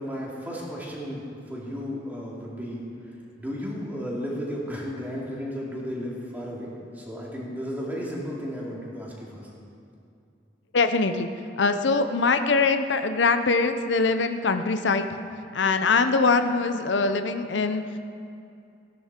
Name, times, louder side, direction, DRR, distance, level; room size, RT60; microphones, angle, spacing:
voice 1, 0.0-2.8 3.4-9.5, equal, 10° right, -5 dB, 2.6 m, -34 dB
voice 2, 10.7-11.3 11.6-15.1 15.5-17.8, left 4 dB, 85° left, 8 dB, 0.7 m, -23 dB
16.5 x 10.5 x 4.4 m, 2.5 s
head